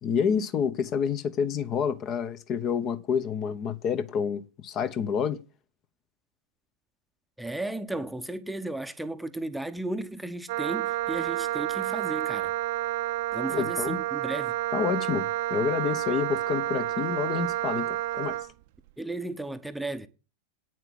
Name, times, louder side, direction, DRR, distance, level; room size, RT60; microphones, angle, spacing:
voice 1, 0.0-5.4 13.5-14.0 14.7-17.9 18.2-18.4, left 7 dB, 35° left, 0.9 m, -28 dB
voice 2, 7.4-12.5 13.3-14.6 19.0-20.1, right 2 dB, 5° right, 0.8 m, -34 dB
Wind instrument woodwind instrument, 10.5-18.5, right 14 dB, 50° right, 0.7 m, -30 dB
9.2 x 7.6 x 7.7 m
figure-of-eight pair, 90°, 0 cm